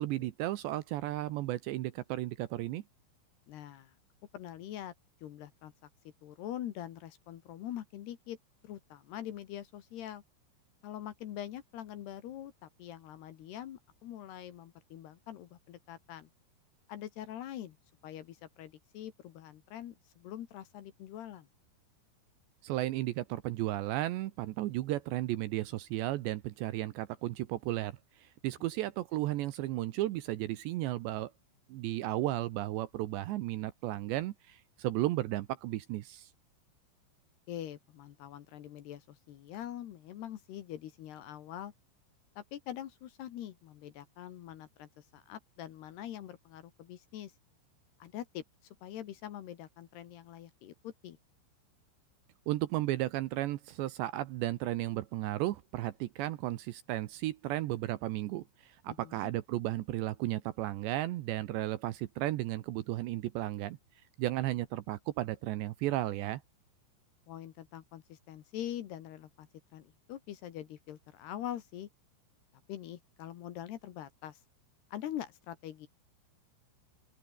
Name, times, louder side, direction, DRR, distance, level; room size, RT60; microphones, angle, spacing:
voice 1, 0.0-2.8 22.6-31.3 31.7-36.3 52.5-63.8 64.2-66.4, right 15 dB, 75° right, 2.8 m, -34 dB
voice 2, 3.5-3.9 4.3-4.9 5.2-5.7 6.2-8.4 8.6-10.2 10.8-16.3 16.9-17.8 18.0-21.5 29.2-29.3 37.5-41.7 42.4-47.3 48.0-48.4 48.8-51.2 58.9-59.3 67.3-71.9 72.7-74.4 74.9-75.9, left 11 dB, 65° left, 3.2 m, -44 dB
open air
omnidirectional pair, 5.8 m